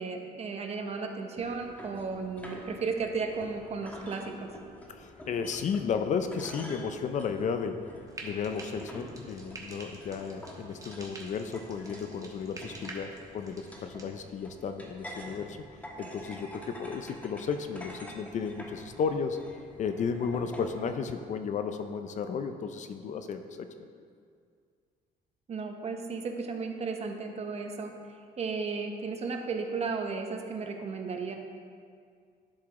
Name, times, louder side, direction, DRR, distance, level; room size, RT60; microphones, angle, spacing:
voice 1, 0.0-4.5 25.5-27.9 28.4-31.4, right 4 dB, 40° right, 4 dB, 0.9 m, -34 dB
sound 1, 1.3-20.9, equal, 10° left, 1.2 m, -47 dB
voice 2, 4.9-7.9 8.2-15.6 16.0-19.4 19.8-23.9, left 6 dB, 45° left, 8 dB, 0.5 m, -33 dB
Frying (food), 8.1-14.1, right 2 dB, 20° right, 1.2 m, -47 dB
11.5 x 4.8 x 3.7 m, 2.2 s
cardioid pair, 110°, 17 cm